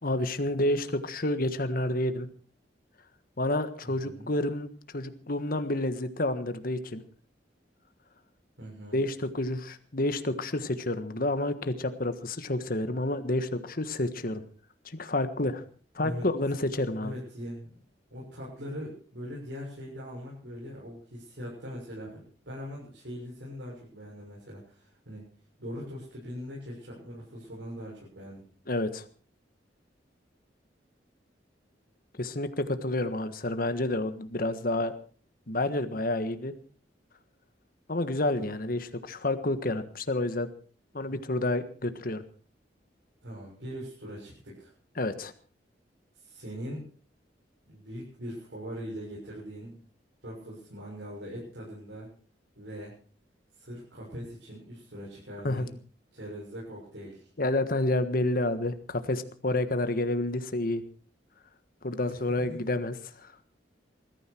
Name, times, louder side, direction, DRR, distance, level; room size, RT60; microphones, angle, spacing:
voice 1, 0.0-2.3 3.4-7.0 8.9-14.4 14.8-15.6 15.9-17.1 28.7-29.0 32.2-34.9 35.5-36.5 37.9-40.5 40.9-42.2 45.0-45.3 55.4-55.6 57.4-60.8 61.8-63.3, left 1 dB, 55° left, 10 dB, 1.5 m, -29 dB
voice 2, 3.8-4.3 8.6-9.0 16.0-16.3 17.0-17.7 18.1-25.2 25.6-28.4 41.1-41.2 43.2-44.7 46.1-46.9 47.6-49.8 50.2-52.1 52.6-52.9 53.6-55.7 56.1-57.3 62.0-62.6, equal, 85° right, -5 dB, 6.9 m, -41 dB
21.0 x 14.0 x 4.6 m, 0.40 s
head